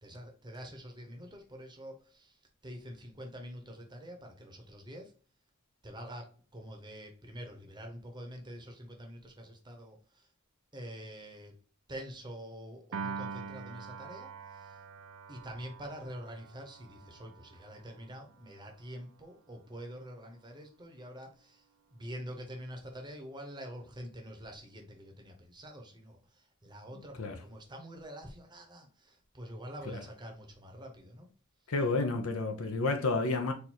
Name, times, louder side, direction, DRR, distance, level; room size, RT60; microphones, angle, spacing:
voice 1, 0.0-5.1 5.8-10.3 10.7-11.6 11.9-14.8 15.3-31.3, equal, 20° right, 0.9 m, -46 dB
Piano, 12.9-19.3, right 5 dB, 60° right, 0.4 m, -45 dB
voice 2, 31.7-33.5, left 3 dB, 65° left, 0.7 m, -30 dB
4.4 x 2.6 x 4.3 m
head